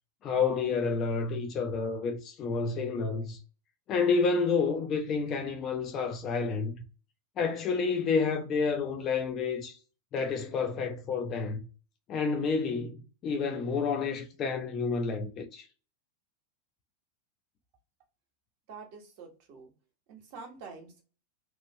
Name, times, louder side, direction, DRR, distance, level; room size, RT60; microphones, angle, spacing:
voice 1, 0.2-3.4 3.9-6.7 7.4-9.8 10.1-11.7 12.1-15.6, left 5 dB, 30° left, 0.6 m, -29 dB
voice 2, 18.7-19.7 20.1-21.0, right 4 dB, 45° right, 1.1 m, -47 dB
3.1 x 2.5 x 3.0 m
figure-of-eight pair, 90°, 0 cm